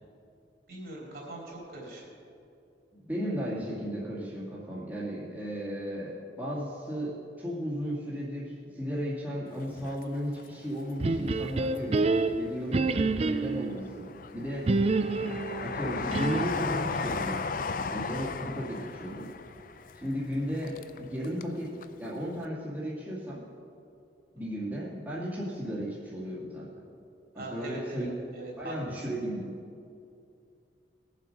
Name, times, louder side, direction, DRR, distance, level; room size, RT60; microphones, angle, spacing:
voice 1, 0.7-2.1 27.4-29.1, right 1 dB, 55° right, -3 dB, 3.6 m, -41 dB
voice 2, 3.0-14.7 15.2-17.5 17.9-19.3 19.9-23.5 24.3-26.9 27.3-28.1 28.6-29.5, equal, 10° right, -8 dB, 2.1 m, -35 dB
Train, 9.6-10.9 11.3-12.3 12.8-21.6 21.8-21.9, left 4 dB, 50° left, 0.4 m, -36 dB
sound 1, 11.0-13.8 14.7-16.6, right 3 dB, 35° right, 0.4 m, -28 dB
20.5 x 7.5 x 5.2 m, 2.5 s
head